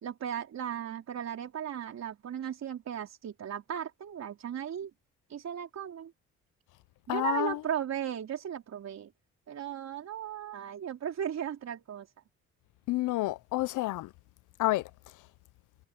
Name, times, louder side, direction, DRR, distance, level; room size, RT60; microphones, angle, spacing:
voice 1, 0.0-4.9 5.3-6.1 7.1-9.1 9.5-12.1, right 9 dB, 60° right, 4.2 m, -36 dB
voice 2, 7.1-7.6 12.9-14.1 14.6-15.3, left 17 dB, 85° left, 0.7 m, -30 dB
cardioid pair, 90°, 30 cm